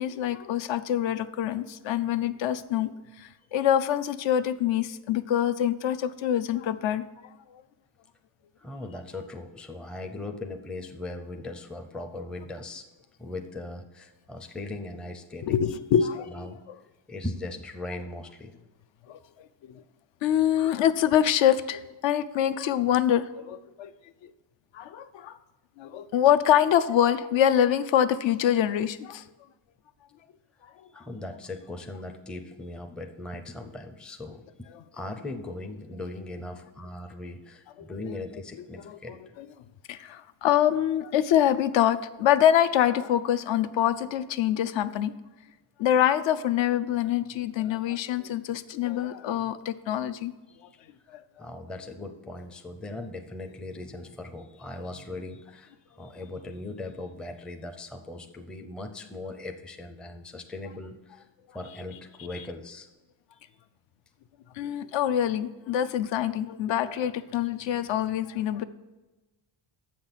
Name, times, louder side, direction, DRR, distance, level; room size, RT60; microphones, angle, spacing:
voice 1, 0.0-2.9 3.2-7.0 15.4-16.8 19.1-19.2 19.7-19.8 20.2-23.9 24.7-25.4 25.8-29.2 34.7-34.8 37.8-37.9 38.9-39.0 39.4-39.5 39.9-45.1 45.8-50.3 51.1-51.2 64.6-68.6, left 10 dB, 65° left, 12 dB, 0.6 m, -25 dB
voice 2, 8.6-12.8 13.2-15.6 16.0-16.6 17.1-18.5 30.9-39.2 50.5-50.8 51.4-61.3 61.5-62.9, left 2 dB, ahead, 5 dB, 0.4 m, -39 dB
7.3 x 6.0 x 7.1 m, 1.1 s
cardioid pair, 150°, 49 cm